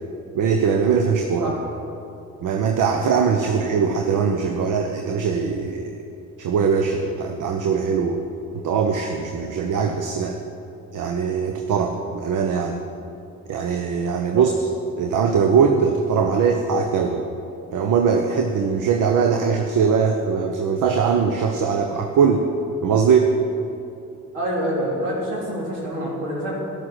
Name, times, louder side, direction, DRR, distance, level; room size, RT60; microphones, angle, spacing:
voice 1, 0.3-1.5 2.4-6.0 6.4-8.2 8.6-10.4 10.9-12.8 13.5-14.5 15.0-17.2 17.7-22.4 22.8-23.3, right 6 dB, 55° right, 4 dB, 1.0 m, -21 dB
voice 2, 24.3-26.5, equal, 75° right, -4 dB, 3.2 m, -26 dB
13.5 x 11.0 x 6.2 m, 2.7 s
figure-of-eight pair, 40°, 37 cm